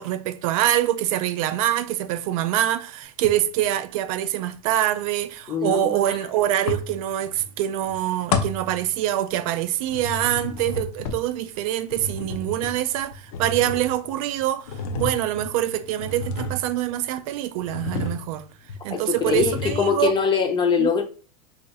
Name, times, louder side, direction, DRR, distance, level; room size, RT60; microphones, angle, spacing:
voice 1, 0.0-18.4 18.8-20.1 20.8-20.9, right 12 dB, 60° right, 0.4 m, -25 dB
sound 1, 3.2-3.7 6.7-7.5 7.8-9.5 9.8-17.1 17.6-18.4 18.7-18.8 19.2-20.1, left 4 dB, 65° left, 0.7 m, -32 dB
voice 2, 5.5-6.2 18.9-21.0, left 6 dB, 25° left, 0.6 m, -23 dB
2.6 x 2.4 x 4.0 m
hypercardioid pair, 115°, 20 cm